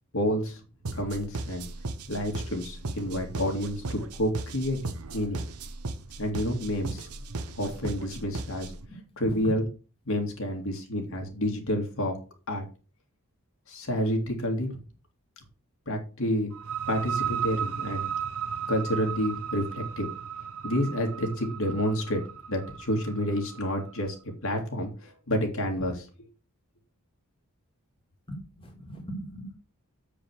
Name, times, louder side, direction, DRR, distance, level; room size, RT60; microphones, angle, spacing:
voice 1, 0.1-0.6 0.9-1.7 2.1-4.8 5.1-5.4 6.2-7.1 7.6-8.7 9.2-9.6 10.1-12.2 12.5-12.7 13.7-14.8 15.9-16.5 16.9-18.1 18.7-20.1 20.6-22.2 22.5-24.2 24.4-26.1, equal, 65° left, 2 dB, 2.4 m, -29 dB
sound 1, 0.9-8.9, right 2 dB, 90° right, 1.1 m, -37 dB
voice 2, 8.5-9.6 28.3-29.5, equal, 25° left, 0 dB, 2.3 m, -40 dB
sound 2, 16.5-24.0, right 8 dB, 70° right, 0.7 m, -35 dB
7.7 x 5.2 x 6.3 m, 0.34 s
head